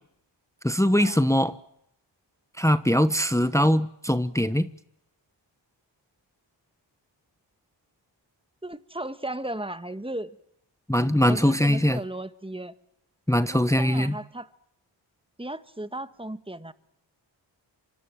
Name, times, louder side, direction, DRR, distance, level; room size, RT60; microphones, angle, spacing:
voice 1, 0.6-1.5 2.6-4.7 10.9-12.0 13.3-14.2, equal, 5° left, 1.2 m, -22 dB
voice 2, 8.6-10.4 11.3-12.7 13.5-14.5 15.4-16.7, right 1 dB, 10° right, 1.6 m, -35 dB
26.5 x 25.5 x 7.6 m
cardioid pair, 55°, 47 cm